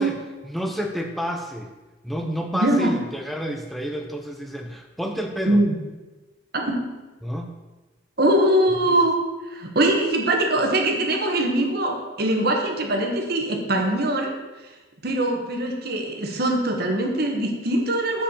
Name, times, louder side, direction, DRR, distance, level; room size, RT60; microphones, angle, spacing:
voice 1, 0.0-1.7 2.0-5.6 7.2-7.5, equal, ahead, 3 dB, 0.4 m, -30 dB
voice 2, 2.5-2.9 5.5-5.7 6.5-6.8 8.2-9.2 9.5-14.3 15.0-18.2, right 1 dB, 50° right, 2 dB, 1.3 m, -22 dB
7.2 x 4.8 x 6.9 m, 1.2 s
head